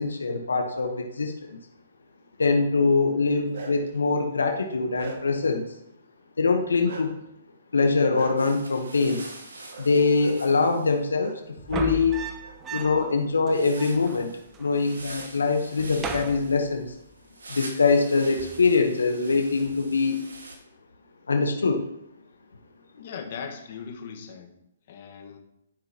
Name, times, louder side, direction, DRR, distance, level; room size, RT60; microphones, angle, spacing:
voice 1, 0.0-1.6 2.4-5.6 6.4-7.2 7.7-9.2 9.8-11.4 11.7-12.2 12.7-14.3 14.6-16.9 17.5-20.2 21.3-21.8, left 4 dB, 90° left, 5 dB, 0.9 m, -23 dB
Bark, 3.2-4.0 4.5-5.5 6.8-7.1 8.1-8.3 9.7-9.9 10.1-10.3 11.2-11.3 11.7-12.5, right 4 dB, 60° right, 1.9 m, -41 dB
sound 1, 8.4-11.0 13.5-20.6, right 2 dB, 90° right, 1.7 m, -44 dB
sound 2, 11.6-13.2 13.5-13.6 13.7-14.7 15.0-15.4 15.7-17.1 18.4-18.8, right 4 dB, 15° right, 0.6 m, -36 dB
voice 2, 23.0-24.5 24.9-25.4, left 6 dB, 50° left, 3 dB, 1.3 m, -39 dB
11.5 x 5.7 x 2.8 m, 0.82 s
hypercardioid pair, 145°, 0 cm